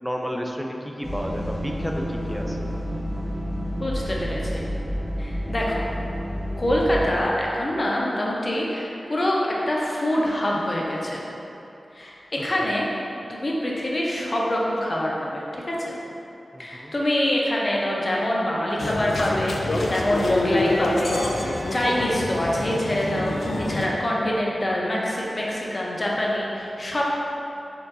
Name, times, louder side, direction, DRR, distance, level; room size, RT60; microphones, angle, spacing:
voice 1, 0.0-2.7 12.6-12.7 16.5-16.9, equal, ahead, 1 dB, 0.4 m, -31 dB
sound 1, 1.0-7.0, equal, 30° right, 1.2 m, -30 dB
voice 2, 2.5-3.1 3.7-4.6 5.2-5.9 6.6-11.2 11.9-12.9 13.3-15.9 16.6-23.3 23.7-27.0, left 1 dB, 45° left, -4 dB, 0.7 m, -25 dB
sound 2, 18.8-23.9, left 2 dB, 75° left, 0.4 m, -26 dB
4.5 x 3.8 x 2.6 m, 2.9 s
wide cardioid pair, 65°, 0 cm